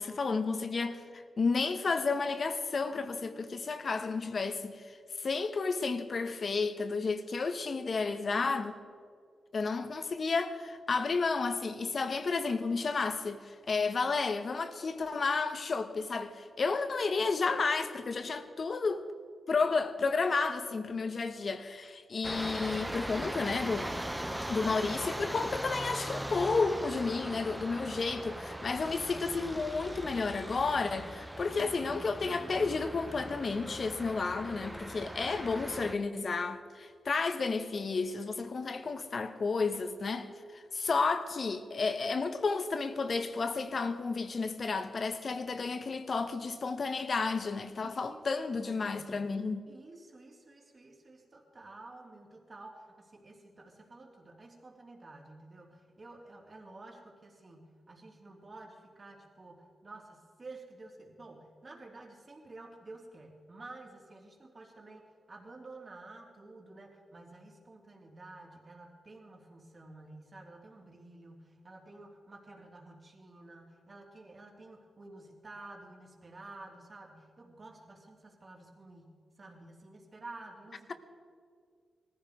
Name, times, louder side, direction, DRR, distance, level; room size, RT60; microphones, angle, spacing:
voice 1, 0.0-8.8 9.5-19.1 19.5-23.9 24.5-49.7, left 4 dB, 55° left, 1.1 m, -32 dB
sound 1, 22.2-35.9, right 1 dB, 10° right, 0.8 m, -39 dB
voice 2, 47.8-48.2 48.5-49.2 49.7-80.9, right 2 dB, 40° right, 3.2 m, -51 dB
19.0 x 14.5 x 5.1 m
cardioid pair, 75°, 0 cm